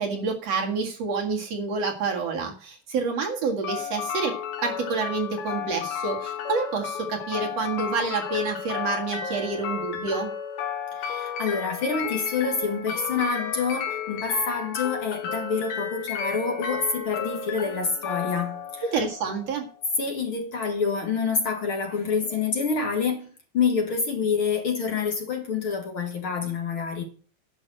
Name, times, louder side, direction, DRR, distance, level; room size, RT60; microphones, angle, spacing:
voice 1, 0.0-4.3 4.6-10.3 18.9-19.7, right 4 dB, 60° right, 2.9 m, -28 dB
sound 1, 3.6-19.6, left 7 dB, 85° left, 2.9 m, -33 dB
voice 2, 10.9-18.9 20.0-23.3 23.5-27.0, left 5 dB, 50° left, 2.2 m, -27 dB
11.0 x 6.3 x 7.8 m
omnidirectional pair, 3.4 m